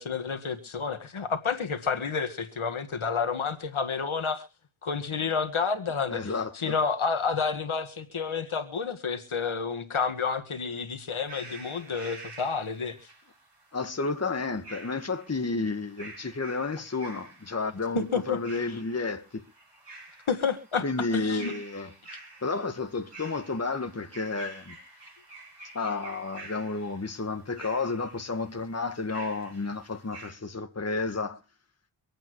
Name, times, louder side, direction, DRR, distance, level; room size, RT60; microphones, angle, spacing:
voice 1, 0.0-4.4 4.8-6.2 6.5-13.0 18.0-18.4 20.3-21.5, left 5 dB, 75° left, 1.8 m, -30 dB
voice 2, 6.1-6.8 13.7-19.4 20.8-21.9 22.4-24.8 25.7-31.4, left 3 dB, 30° left, 1.5 m, -31 dB
sound 1, 11.1-30.3, right 2 dB, 55° right, 5.9 m, -49 dB
25.5 x 8.9 x 3.1 m
wide cardioid pair, 75°, 49 cm